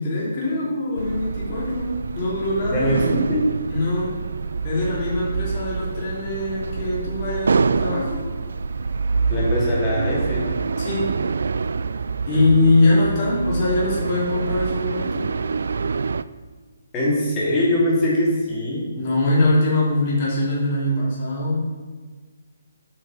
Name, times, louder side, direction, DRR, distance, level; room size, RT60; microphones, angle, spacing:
voice 1, 0.0-2.9 3.7-4.2 4.6-8.2 10.8-11.1 12.2-15.3 18.9-21.7, left 2 dB, 30° left, -6 dB, 3.1 m, -22 dB
sound 1, 1.0-16.2, right 5 dB, 75° right, 0.4 m, -26 dB
voice 2, 2.7-3.5 9.3-10.6 12.3-12.5 16.9-18.9, left 1 dB, 15° left, -6 dB, 2.7 m, -22 dB
9.1 x 5.3 x 6.3 m, 1.4 s
hypercardioid pair, 165°, 0 cm